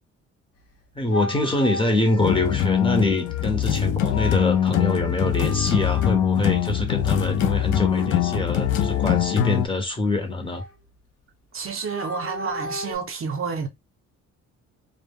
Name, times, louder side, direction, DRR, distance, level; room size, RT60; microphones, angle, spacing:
sound 1, 0.6-0.7 1.1-3.6 4.1-6.2 6.9-9.5 10.0-10.9 11.6-13.0, left 3 dB, 55° left, 0.8 m, -36 dB
voice 1, 1.0-10.6, left 2 dB, 15° left, 0.7 m, -25 dB
sound 2, 2.2-9.7, left 9 dB, 85° left, 0.5 m, -23 dB
voice 2, 11.5-13.7, right 5 dB, 45° right, 0.6 m, -29 dB
2.1 x 2.0 x 3.4 m
cardioid pair, 90°, 30 cm